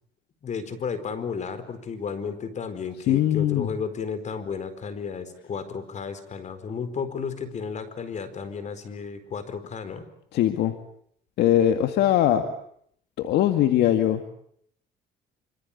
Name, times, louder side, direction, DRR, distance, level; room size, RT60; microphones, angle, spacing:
voice 1, 0.4-10.1, left 6 dB, 45° left, 13 dB, 4.4 m, -33 dB
voice 2, 3.1-3.7 10.3-10.7 11.4-12.5 13.2-14.2, left 11 dB, 80° left, 8 dB, 2.1 m, -21 dB
26.5 x 25.5 x 8.6 m, 0.66 s
cardioid pair, 110°, 17 cm